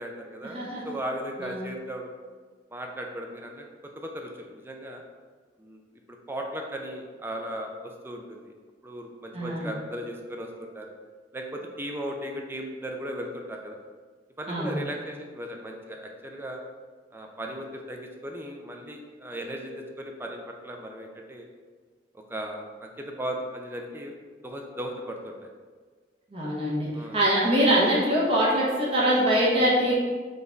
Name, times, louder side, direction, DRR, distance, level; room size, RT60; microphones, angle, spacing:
voice 1, 0.0-2.1 2.7-3.6 4.0-5.0 5.6-5.8 6.1-8.5 8.8-10.9 11.3-13.8 14.4-16.6 17.1-21.5 22.1-24.1 24.4-25.5 26.9-27.2, equal, 10° right, 2 dB, 0.4 m, -37 dB
voice 2, 0.5-1.0 1.4-1.6 9.3-9.7 14.5-14.8 26.3-29.9, equal, 30° right, -6 dB, 1.2 m, -23 dB
3.9 x 3.5 x 3.9 m, 1.5 s
head